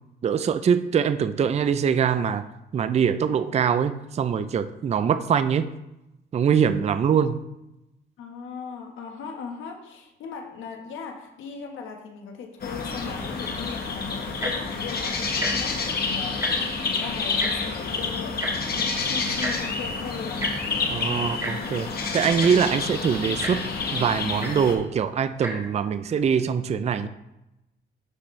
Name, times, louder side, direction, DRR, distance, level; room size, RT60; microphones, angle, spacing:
voice 1, 0.2-2.4 2.7-5.7 6.3-7.5 20.9-21.9 22.1-23.7 23.9-27.1, right 7 dB, 35° right, 11 dB, 0.4 m, -23 dB
voice 2, 8.2-16.5 16.8-20.6, left 6 dB, 80° left, 3 dB, 1.3 m, -38 dB
sound 1, 12.6-24.7, left 4 dB, 50° left, 1.4 m, -28 dB
Tick-tock, 14.3-14.7 15.3-15.5 15.8-16.0 16.2-16.8 17.4-17.5 18.4-18.5 19.4-19.5 20.4-20.5 21.4-21.5 22.1-22.2 22.4-22.7 23.4-23.5 24.4-24.5 25.3-25.5 26.2-26.3, right 1 dB, 15° right, 2.2 m, -31 dB
11.5 x 4.2 x 3.2 m, 0.92 s
cardioid pair, 90°, 20 cm